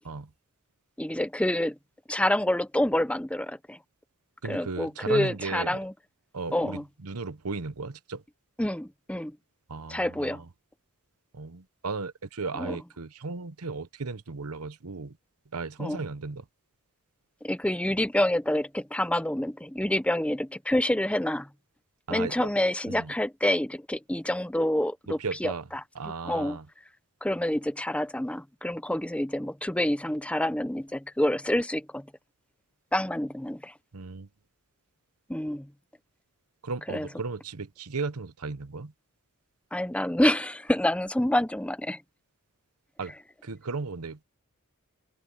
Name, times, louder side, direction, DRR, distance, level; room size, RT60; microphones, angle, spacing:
voice 1, 1.0-1.8 2.1-3.8 4.5-5.9 6.5-6.8 8.6-9.4 9.9-10.4 12.6-12.8 15.8-16.0 17.4-21.5 22.1-25.5 26.2-26.6 27.2-32.1 32.9-33.7 35.3-35.7 36.9-37.1 39.7-42.0, left 1 dB, 5° left, 0.7 m, -27 dB
voice 2, 4.4-5.8 6.3-8.2 9.7-10.4 11.3-15.2 15.5-16.4 22.1-22.5 22.9-23.1 25.1-25.7 26.0-26.7 33.9-34.3 36.6-38.9 43.0-43.1 43.4-44.2, right 4 dB, 90° right, 1.0 m, -35 dB
head